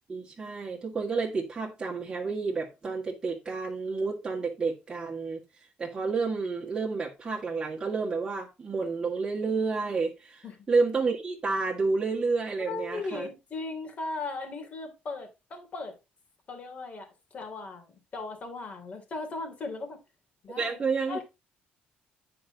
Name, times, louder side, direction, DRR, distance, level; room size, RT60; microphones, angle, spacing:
voice 1, 0.1-5.4 5.8-13.3 20.6-21.2, right 4 dB, 25° right, 1.8 m, -30 dB
voice 2, 12.7-16.0 16.5-20.0 20.4-20.8 21.1-21.2, left 3 dB, 40° left, 2.9 m, -37 dB
9.2 x 4.8 x 3.9 m
cardioid pair, 125°, 4 cm